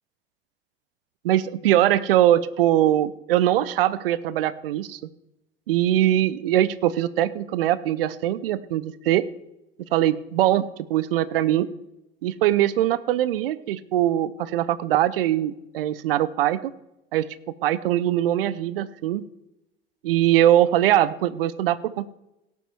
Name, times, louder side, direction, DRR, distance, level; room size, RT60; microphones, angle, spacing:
voice 1, 1.2-5.0 5.7-9.3 9.9-11.7 12.2-16.7 17.1-17.3 17.6-19.2 20.0-22.1, right 12 dB, 70° right, 17 dB, 0.7 m, -22 dB
17.0 x 7.0 x 4.6 m, 0.88 s
figure-of-eight pair, 70°, 30 cm